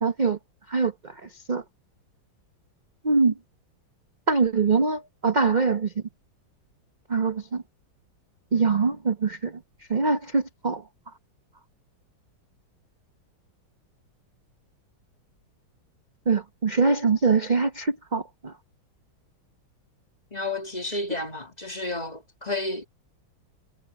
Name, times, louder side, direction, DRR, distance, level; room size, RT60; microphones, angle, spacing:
voice 1, 0.0-0.4 0.7-1.1 1.5-1.6 3.0-3.3 4.3-5.9 7.1-7.6 8.5-9.5 9.9-10.8 16.3-18.5, right 4 dB, 30° right, 0.9 m, -23 dB
voice 2, 20.3-22.9, left 2 dB, 20° left, 2.0 m, -31 dB
omnidirectional pair, 2.1 m